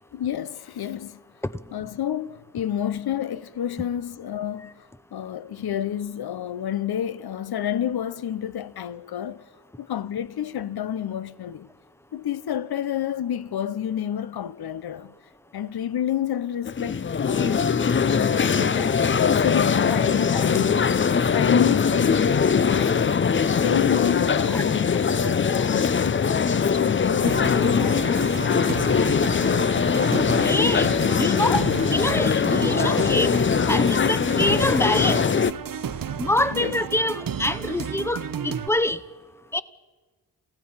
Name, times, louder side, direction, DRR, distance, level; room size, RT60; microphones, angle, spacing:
voice 1, 0.1-1.2 1.7-9.5 9.8-11.7 12.1-15.1 15.5-17.8 18.5-20.9 21.3-23.2 23.6-26.3 26.5-28.3 31.3-31.4 36.5-36.8, left 10 dB, 60° left, 0.9 m, -29 dB
sound 1, 16.7-35.5, left 6 dB, 30° left, 0.5 m, -21 dB
sound 2, 27.3-38.7, right 8 dB, 55° right, 0.9 m, -33 dB
voice 2, 30.1-33.3 33.7-35.2 36.2-39.0 39.5-39.6, left 1 dB, 5° left, 0.8 m, -25 dB
28.5 x 16.5 x 5.6 m
cardioid pair, 75°, 42 cm